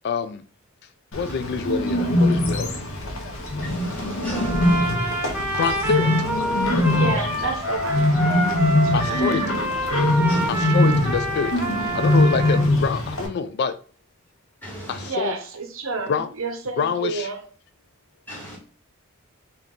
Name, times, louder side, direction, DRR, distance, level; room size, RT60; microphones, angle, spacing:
voice 1, 0.0-0.4 1.1-2.8 5.6-6.2 8.9-9.4 10.5-11.5 11.9-13.7 14.9-15.3 16.1-16.3 16.8-17.3, left 6 dB, 55° left, 0.3 m, -26 dB
Bird, 1.1-13.3, left 1 dB, 85° left, 0.9 m, -22 dB
voice 2, 3.6-4.8 10.3-10.7 14.6-15.1 18.3-18.6, equal, 10° left, 1.7 m, -37 dB
Trumpet, 4.3-12.7, right 1 dB, 10° right, 0.8 m, -27 dB
voice 3, 6.9-8.5 8.8-9.3 15.0-17.4, right 4 dB, 80° right, 0.8 m, -30 dB
3.6 x 2.8 x 3.6 m
head